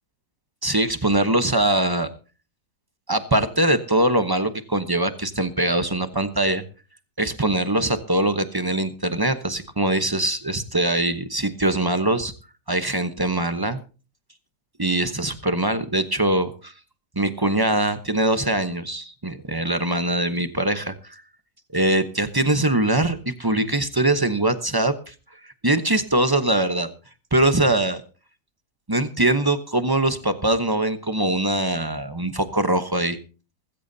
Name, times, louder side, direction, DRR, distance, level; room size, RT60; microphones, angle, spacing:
voice 1, 0.6-2.1 3.1-6.6 7.2-12.3 12.7-13.8 14.8-16.7 17.2-21.2 21.7-25.1 25.6-26.9 27.3-28.0 28.9-33.2, right 1 dB, 20° right, 10 dB, 0.7 m, -22 dB
19.5 x 15.5 x 2.8 m, 0.35 s
omnidirectional pair, 1.8 m